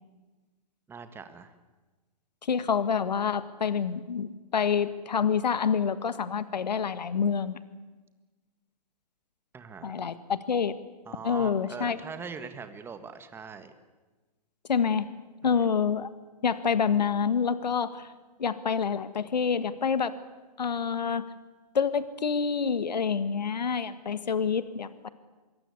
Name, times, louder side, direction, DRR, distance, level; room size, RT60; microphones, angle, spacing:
voice 1, 0.9-1.5 9.5-9.9 11.0-13.7 15.4-15.7, right 5 dB, 10° right, 9 dB, 1.7 m, -42 dB
voice 2, 2.5-7.6 9.8-10.7 11.2-12.0 14.7-15.1 15.4-16.1 16.4-18.0 18.4-20.1 20.6-21.2 21.7-25.1, left 6 dB, 80° left, 13 dB, 1.7 m, -27 dB
25.5 x 22.5 x 8.5 m, 1.2 s
hypercardioid pair, 135°, 21 cm